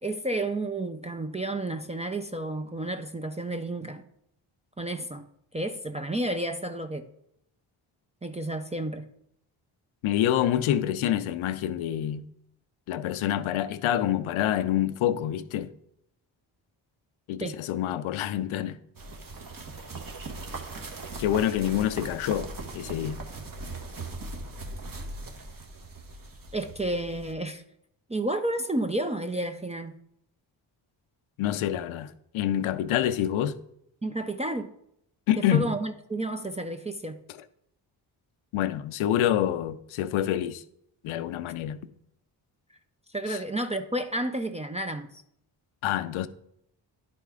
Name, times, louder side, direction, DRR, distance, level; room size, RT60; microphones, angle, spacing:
voice 1, 0.0-4.0 4.8-5.3 5.5-7.1 8.2-9.0 17.4-17.6 26.5-27.6 28.1-30.0 34.0-34.7 35.4-37.2 43.1-45.1, right 1 dB, 15° right, 0.6 m, -31 dB
voice 2, 10.0-12.2 12.9-15.7 17.3-18.8 21.2-22.5 22.7-23.2 31.4-33.6 35.3-35.8 38.5-40.6 41.0-41.8 43.3-43.4 45.8-46.3, left 11 dB, 75° left, 0.6 m, -27 dB
sound 1, 19.0-27.3, right 2 dB, 40° right, 1.4 m, -39 dB
10.5 x 4.2 x 3.7 m
supercardioid pair, 45°, 48 cm